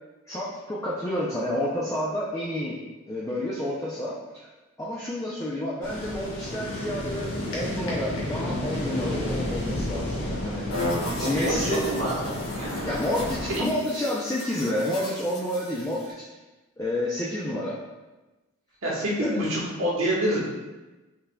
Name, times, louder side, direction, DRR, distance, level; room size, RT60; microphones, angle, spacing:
voice 1, 0.3-2.8 3.1-4.5 4.8-11.8 12.9-16.2 16.8-17.8 19.2-19.4, left 1 dB, 15° left, -6 dB, 0.4 m, -30 dB
sound 1, 5.8-13.6, left 1 dB, 60° left, 1.1 m, -31 dB
sound 2, 10.7-16.1, left 1 dB, 85° left, 0.8 m, -36 dB
voice 2, 10.9-12.9 13.5-13.7 18.8-20.4, right 1 dB, 70° right, -6 dB, 1.3 m, -27 dB
5.6 x 3.6 x 2.2 m, 1.1 s
head